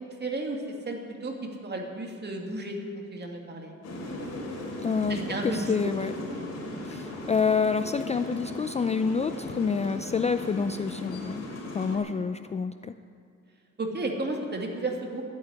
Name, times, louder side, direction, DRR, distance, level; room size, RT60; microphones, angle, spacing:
voice 1, 0.0-1.3 1.6-3.7 5.1-5.9 11.9-12.0 13.8-15.2, right 2 dB, 35° right, 2 dB, 2.5 m, -33 dB
sound 1, 3.8-12.0, left 1 dB, 55° left, 4.1 m, -37 dB
voice 2, 4.8-6.1 6.8-11.4 11.7-12.9, left 5 dB, 20° left, 11 dB, 0.4 m, -28 dB
12.5 x 8.9 x 9.8 m, 2.5 s
cardioid pair, 90°, 30 cm